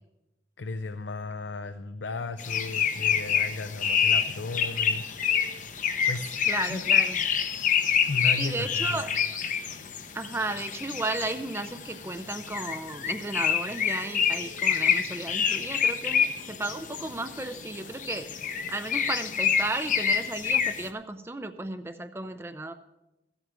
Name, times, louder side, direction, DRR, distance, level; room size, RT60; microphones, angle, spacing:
voice 1, 0.6-5.0 6.1-6.3 6.7-6.8 8.1-9.0, left 3 dB, 85° left, 9 dB, 0.6 m, -35 dB
sound 1, 2.4-20.9, left 7 dB, 45° left, 0.8 m, -27 dB
voice 2, 6.5-7.2 8.4-9.1 10.1-18.3 18.7-22.7, right 2 dB, 15° right, 8 dB, 0.5 m, -34 dB
15.5 x 8.1 x 6.0 m, 0.97 s
head